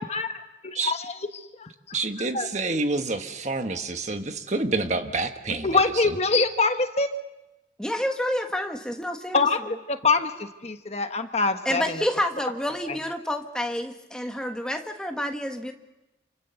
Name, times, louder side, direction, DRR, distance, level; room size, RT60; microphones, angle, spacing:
voice 1, 0.0-2.0 2.3-2.5 5.6-7.1 9.3-12.0 12.9-13.0, left 3 dB, 35° left, 7 dB, 1.2 m, -25 dB
voice 2, 1.9-6.0, right 3 dB, 40° right, 6 dB, 1.5 m, -28 dB
voice 3, 7.8-9.5 11.6-15.7, left 1 dB, 5° left, 4 dB, 1.6 m, -29 dB
29.0 x 24.5 x 7.0 m, 1.0 s
head